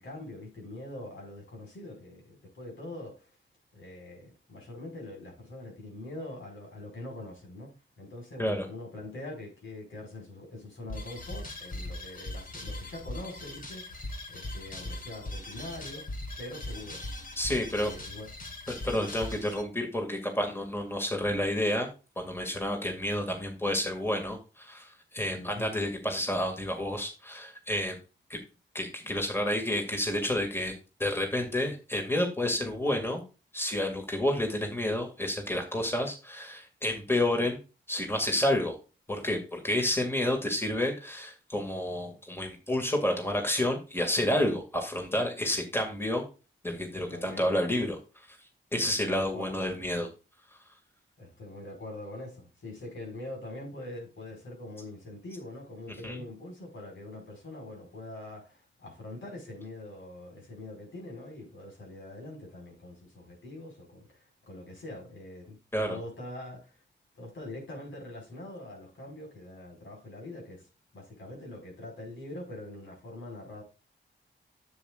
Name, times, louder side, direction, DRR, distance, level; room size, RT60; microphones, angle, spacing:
voice 1, 0.0-3.4 3.7-7.7 8.0-16.1 16.4-17.0 17.5-18.3 25.3-25.7 47.1-47.6 48.8-49.6 51.2-65.6 65.9-66.8 67.2-70.7 70.9-73.6, left 1 dB, 75° left, 5.4 m, -43 dB
sound 1, 10.9-19.6, left 1 dB, 45° left, 2.3 m, -40 dB
voice 2, 17.4-17.9 18.7-21.9 22.2-28.0 28.3-28.4 28.7-30.7 31.0-33.2 33.5-37.6 37.9-38.8 39.1-46.2 46.6-48.4 48.7-50.1 56.0-56.2 65.7-66.0, left 1 dB, 10° left, 2.3 m, -30 dB
9.9 x 8.0 x 2.5 m
cardioid pair, 70°, 20 cm